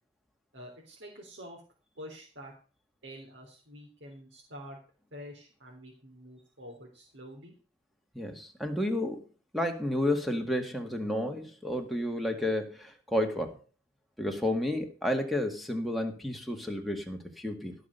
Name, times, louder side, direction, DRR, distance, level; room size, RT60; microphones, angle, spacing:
voice 1, 0.5-1.6 2.0-2.5 3.0-4.8 5.1-7.5, equal, 75° right, -2 dB, 3.5 m, -47 dB
voice 2, 8.1-9.2 9.5-13.6 14.2-17.7, left 1 dB, ahead, 4 dB, 1.9 m, -31 dB
16.5 x 6.0 x 6.7 m, 0.37 s
head